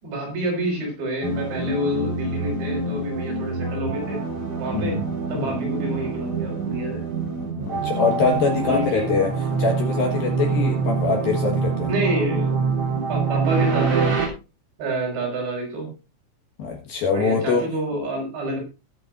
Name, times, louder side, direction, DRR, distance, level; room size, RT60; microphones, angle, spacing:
voice 1, 0.0-4.2 4.6-5.0 5.3-7.0 8.6-9.1 10.2-10.3 11.9-12.6 13.1-14.1 14.8-15.9 17.1-18.6, right 1 dB, 60° right, 0 dB, 7.3 m, -28 dB
sound 1, 1.2-14.3, right 4 dB, 35° right, 3.7 m, -25 dB
voice 2, 4.7-5.0 5.3-5.5 7.5-9.3 9.6-11.9 16.6-17.7, left 4 dB, 65° left, 3 dB, 2.7 m, -23 dB
20.5 x 8.0 x 2.6 m, 0.30 s
omnidirectional pair, 5.6 m